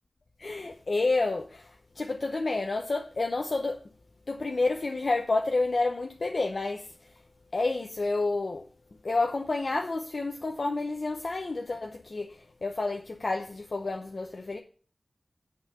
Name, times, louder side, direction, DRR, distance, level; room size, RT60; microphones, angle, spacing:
voice 1, 0.4-3.8 4.3-7.1 7.5-8.7 9.0-14.6, left 3 dB, 65° left, 0.8 m, -29 dB
9.6 x 4.0 x 7.0 m
cardioid pair, 45°, 0 cm